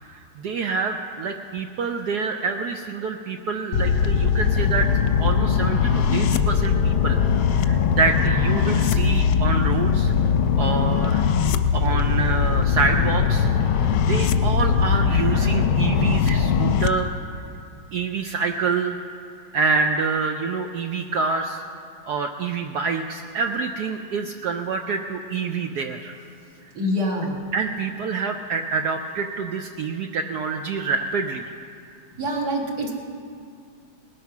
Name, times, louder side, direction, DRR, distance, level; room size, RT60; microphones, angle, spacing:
voice 1, 0.0-4.9 5.2-7.2 7.5-10.1 10.6-11.2 11.7-17.1 17.9-19.0 19.5-21.6 22.1-26.1 27.5-31.4, right 5 dB, 75° right, 5 dB, 0.9 m, -26 dB
sound 1, 3.7-16.9, left 7 dB, 85° left, 1.5 m, -20 dB
voice 2, 26.7-27.4 32.2-32.9, equal, 55° right, -1 dB, 2.1 m, -25 dB
20.0 x 8.3 x 5.9 m, 2.3 s
omnidirectional pair, 2.3 m